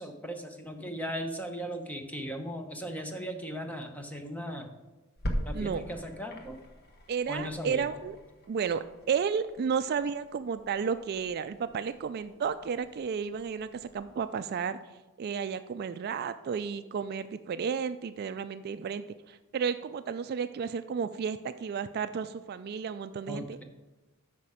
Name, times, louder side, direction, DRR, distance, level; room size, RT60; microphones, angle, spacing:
voice 1, 0.0-4.7 5.4-6.6 7.3-7.9 23.3-23.6, equal, 5° left, 4 dB, 0.8 m, -37 dB
sound 1, 5.2-14.5, equal, 50° left, 1.1 m, -42 dB
voice 2, 7.1-8.2 8.5-14.8 15.2-23.6, right 6 dB, 45° right, 12 dB, 0.3 m, -32 dB
8.5 x 6.0 x 4.9 m, 1.2 s
head